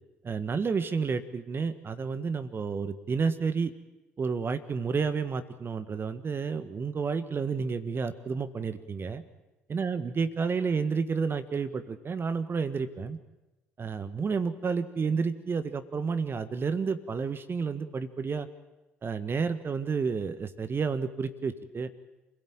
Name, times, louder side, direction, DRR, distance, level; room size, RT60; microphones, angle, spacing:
voice 1, 0.2-3.7 4.2-9.2 9.7-13.2 13.8-18.5 19.0-21.9, right 5 dB, 35° right, 11 dB, 1.6 m, -30 dB
28.0 x 16.5 x 9.0 m, 1.0 s
figure-of-eight pair, 50°, 7 cm